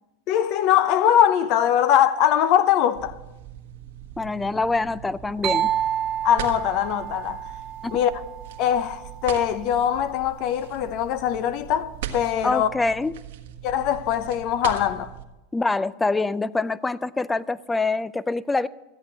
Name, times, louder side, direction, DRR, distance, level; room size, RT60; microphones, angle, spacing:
voice 1, 0.3-3.2 6.2-7.4 7.9-8.1 8.6-12.7 13.6-15.1, left 10 dB, 55° left, 0.7 m, -22 dB
sound 1, 2.9-15.2, right 10 dB, 80° right, 1.3 m, -40 dB
voice 2, 4.2-5.7 7.8-7.9 12.4-13.1 15.5-18.7, left 3 dB, 10° left, 0.4 m, -25 dB
sound 2, 5.4-9.1, right 10 dB, 40° right, 0.6 m, -29 dB
14.0 x 8.4 x 7.4 m
supercardioid pair, 115°, 0 cm